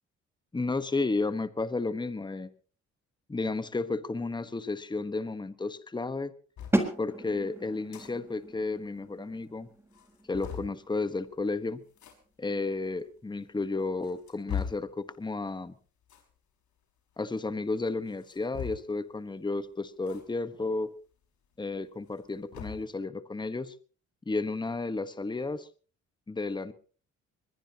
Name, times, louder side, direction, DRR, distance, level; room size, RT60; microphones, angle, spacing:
voice 1, 0.5-2.5 3.3-6.3 7.0-9.7 10.3-11.8 12.4-15.7 17.2-20.9 21.6-23.7 24.3-25.7 26.3-26.7, left 3 dB, 15° left, 12 dB, 1.2 m, -32 dB
sound 1, 6.6-6.8 7.7-8.1 8.4-8.5 8.8-8.9 9.4-9.5 9.9-10.8 11.9-12.1 13.0-13.1 13.8-14.9 16.0-16.3 18.1-19.0 20.0-20.2 20.6-20.7 22.0-22.9, left 8 dB, 70° left, 5.7 m, -39 dB
sound 2, 6.7-12.4, right 1 dB, 10° right, 4.0 m, -35 dB
22.0 x 21.5 x 2.9 m, 0.40 s
cardioid pair, 90°, 30 cm